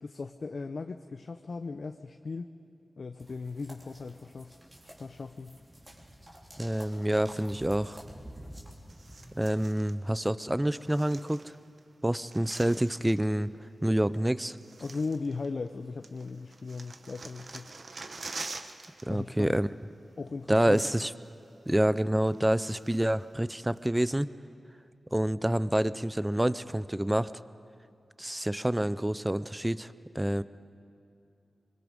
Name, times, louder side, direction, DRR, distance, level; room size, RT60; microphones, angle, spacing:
voice 1, 0.0-2.5 3.0-4.5 4.8-5.6 14.8-17.8 19.1-19.6 20.2-20.8, left 4 dB, 60° left, 7 dB, 0.7 m, -38 dB
sound 1, 3.2-9.4, equal, 30° right, 3.6 m, -49 dB
voice 2, 6.6-8.0 9.4-11.4 12.0-13.5 13.8-14.6 19.1-19.7 20.5-21.1 21.7-24.3 25.1-27.3 28.2-30.4, right 1 dB, 10° right, 16 dB, 0.6 m, -27 dB
sound 2, 8.9-10.0 10.7-11.8 12.1-13.3 14.1-14.2 14.6-15.8 16.0-19.1 19.3-19.5 20.3-20.4 20.6-21.3 21.7-21.8 22.3-23.2 23.8-23.9, right 3 dB, 60° right, 1.1 m, -46 dB
24.0 x 22.5 x 5.2 m, 2.6 s
wide cardioid pair, 80°, 0 cm